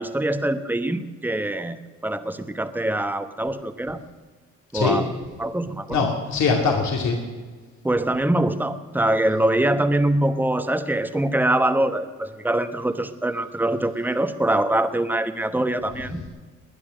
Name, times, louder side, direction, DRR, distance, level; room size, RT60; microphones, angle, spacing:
voice 1, 0.0-1.8 2.0-4.0 4.7-5.1 5.4-6.0 7.8-16.3, right 1 dB, 5° right, 10 dB, 1.0 m, -23 dB
voice 2, 5.9-7.2 16.1-16.3, left 4 dB, 70° left, 1 dB, 2.4 m, -22 dB
20.0 x 9.8 x 6.4 m, 1.4 s
cardioid pair, 90°, 30 cm